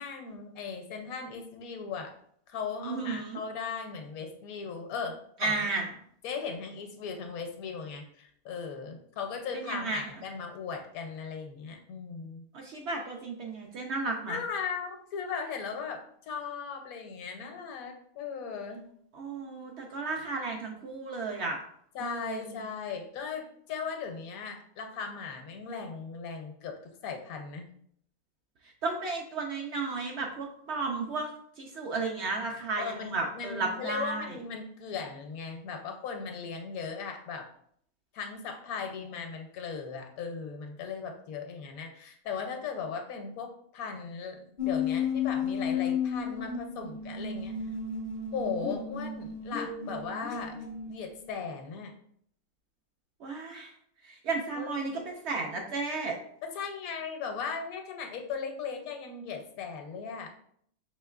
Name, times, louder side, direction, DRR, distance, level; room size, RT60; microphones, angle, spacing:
voice 1, 0.0-2.1 2.5-5.7 6.2-12.4 14.3-18.9 21.9-27.7 32.8-37.5 38.1-47.5 48.3-50.6 50.9-51.9 54.6-54.7 56.4-60.3, left 5 dB, 75° left, 4 dB, 1.1 m, -38 dB
voice 2, 2.8-3.4 5.4-5.9 9.5-10.0 12.5-14.4 19.1-21.6 22.0-22.4 28.8-31.3 31.6-34.4 53.2-53.7 54.0-56.2, right 3 dB, 65° right, 1 dB, 0.7 m, -33 dB
sound 1, 44.6-51.3, left 6 dB, 50° left, 0.6 m, -33 dB
5.0 x 3.1 x 2.3 m, 0.65 s
omnidirectional pair, 1.5 m